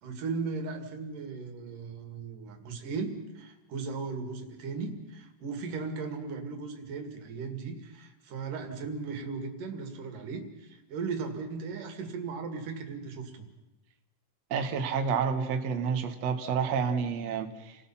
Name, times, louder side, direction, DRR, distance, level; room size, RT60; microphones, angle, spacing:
voice 1, 0.0-13.5, right 4 dB, 50° right, 5 dB, 3.2 m, -37 dB
voice 2, 14.5-17.8, right 6 dB, 90° right, 5 dB, 1.4 m, -29 dB
29.5 x 19.0 x 5.8 m, 0.99 s
omnidirectional pair, 5.6 m